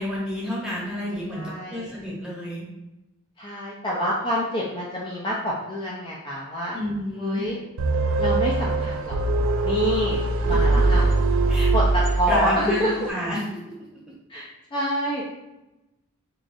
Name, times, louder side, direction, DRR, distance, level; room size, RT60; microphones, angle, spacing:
voice 1, 0.0-2.6 6.7-7.5 10.4-10.7 11.5-11.7 12.2-13.7, equal, 5° right, -6 dB, 0.9 m, -30 dB
voice 2, 1.3-1.9 3.4-6.8 7.2-7.6 8.2-9.3 9.6-10.2 10.5-11.1 11.7-13.1 14.3-14.4 14.7-15.2, equal, 25° left, -5 dB, 0.4 m, -27 dB
sound 1, 7.8-12.8, right 2 dB, 65° right, 0.4 m, -22 dB
4.6 x 2.5 x 2.6 m, 0.97 s
head